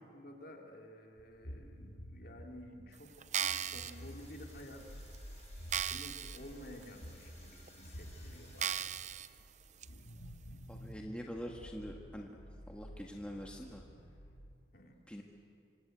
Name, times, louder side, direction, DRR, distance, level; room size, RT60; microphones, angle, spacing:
voice 1, 0.1-5.1 5.9-8.8 14.7-15.0, left 1 dB, 50° left, 1 dB, 3.3 m, -52 dB
sound 1, 1.2-14.4, equal, 90° left, 4.3 m, -51 dB
sound 2, 3.2-3.9 4.6-4.7 5.1-5.2 5.7-6.4 6.8-6.9 7.7-7.8 8.6-9.3 9.8-9.9, right 10 dB, 35° right, 0.5 m, -36 dB
Engine, 3.5-8.6, left 3 dB, 35° left, 6.9 m, -62 dB
voice 2, 10.7-12.4 12.7-13.8 15.1-15.2, equal, 5° left, 0 dB, 1.6 m, -44 dB
26.0 x 25.0 x 8.2 m, 2.4 s
head